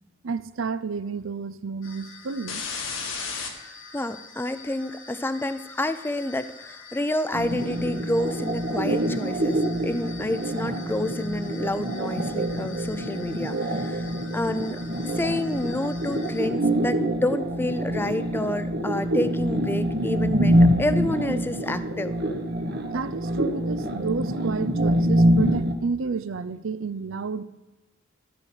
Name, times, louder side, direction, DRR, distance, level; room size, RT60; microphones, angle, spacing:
voice 1, 0.2-2.6 22.9-27.4, right 5 dB, 85° right, 0.6 m, -31 dB
sound 1, 1.8-16.5, left 5 dB, 85° left, 1.6 m, -41 dB
voice 2, 3.9-14.8 15.0-22.1, left 1 dB, 10° left, 0.4 m, -29 dB
sound 2, 7.3-25.7, equal, 55° right, 1.1 m, -25 dB
13.5 x 5.4 x 6.6 m
head